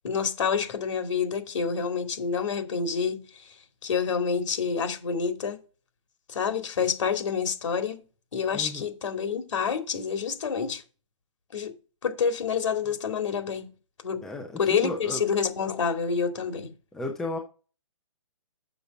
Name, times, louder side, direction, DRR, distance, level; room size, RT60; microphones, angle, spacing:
voice 1, 0.0-3.6 3.8-5.6 6.3-8.0 8.3-10.8 11.5-11.7 12.0-13.7 14.0-14.3 14.6-16.7, left 6 dB, 60° left, 2.3 m, -28 dB
voice 2, 8.5-8.8 14.2-14.5 14.8-15.2 16.9-17.4, left 2 dB, ahead, 0.6 m, -33 dB
7.0 x 5.6 x 5.2 m
hypercardioid pair, 165°, 17 cm